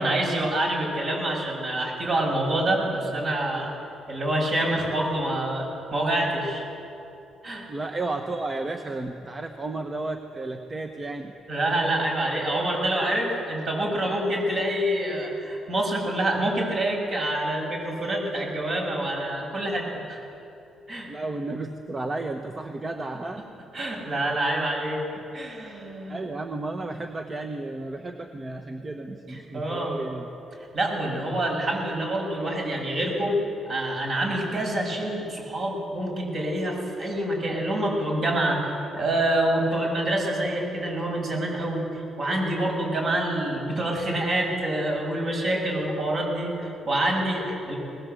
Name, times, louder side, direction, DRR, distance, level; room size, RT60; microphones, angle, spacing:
voice 1, 0.0-3.7 4.1-6.6 7.4-7.6 11.5-20.2 20.9-21.1 23.7-25.0 25.3-26.2 29.3-30.0 30.7-33.4 33.7-38.7 38.9-47.7, right 1 dB, 50° right, 0 dB, 7.1 m, -26 dB
voice 2, 7.7-11.3 21.0-23.4 25.2-25.3 26.1-30.3, right 2 dB, 25° right, 5 dB, 1.3 m, -33 dB
21.0 x 20.0 x 8.2 m, 2.8 s
cardioid pair, 90°, 0 cm